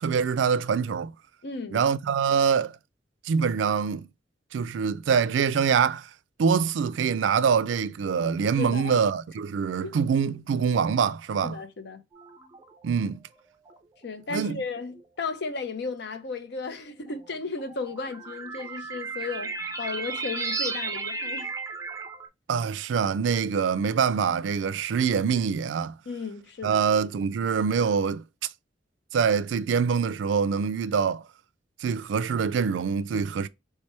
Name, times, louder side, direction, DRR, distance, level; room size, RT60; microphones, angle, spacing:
voice 1, 0.0-1.1 1.7-2.7 3.2-4.1 4.5-6.1 6.4-11.6 12.8-13.2 14.3-14.6 22.5-25.9 26.6-28.2 29.1-31.2 31.8-33.5, right 6 dB, 85° right, 0.4 m, -24 dB
voice 2, 1.4-1.8 8.6-8.9 9.8-10.0 11.4-12.0 14.0-21.5 26.1-27.1, left 4 dB, 65° left, 0.6 m, -35 dB
sound 1, 12.1-12.8 13.7-13.8 14.9-15.0 17.2-22.3, right 4 dB, 20° right, 0.5 m, -34 dB
3.4 x 3.3 x 4.3 m
head